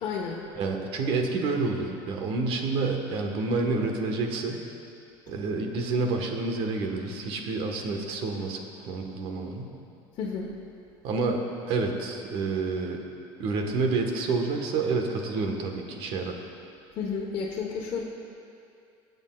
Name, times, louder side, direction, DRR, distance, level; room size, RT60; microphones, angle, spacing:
voice 1, 0.0-0.4 10.1-10.5 16.9-18.0, left 5 dB, 45° left, -4 dB, 1.1 m, -31 dB
voice 2, 0.6-4.6 5.3-9.7 11.0-11.4 11.7-13.0 13.4-16.4, right 3 dB, 60° right, 3 dB, 1.3 m, -28 dB
21.0 x 8.1 x 2.4 m, 2.5 s
supercardioid pair, 115°, 10 cm